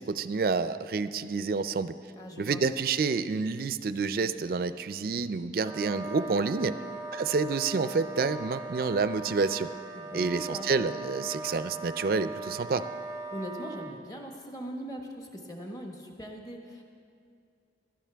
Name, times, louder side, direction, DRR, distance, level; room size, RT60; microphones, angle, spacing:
voice 1, 0.0-1.9 2.4-6.8 7.1-9.7 10.1-12.9, right 4 dB, 50° right, 13 dB, 0.4 m, -28 dB
voice 2, 2.1-2.6 9.9-10.7 13.3-16.8, equal, 20° left, 1 dB, 1.2 m, -40 dB
Wind instrument woodwind instrument, 5.6-14.0, right 3 dB, 15° right, 0.6 m, -40 dB
17.5 x 12.5 x 3.4 m, 2.4 s
head